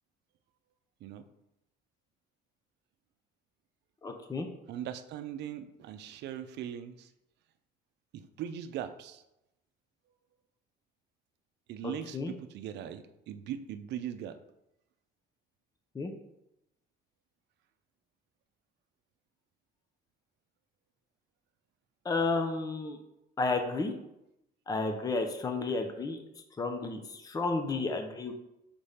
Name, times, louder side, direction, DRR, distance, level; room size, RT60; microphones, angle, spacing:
voice 1, 4.0-4.5 12.1-12.3 15.9-16.1 22.0-23.0 23.4-23.9 24.7-26.2 26.6-28.3, left 3 dB, 20° left, 5 dB, 0.6 m, -32 dB
voice 2, 4.7-7.1 8.1-9.2 11.7-14.4, right 10 dB, 65° right, 10 dB, 0.6 m, -40 dB
5.1 x 3.4 x 5.6 m, 0.87 s
cardioid pair, 115°, 19 cm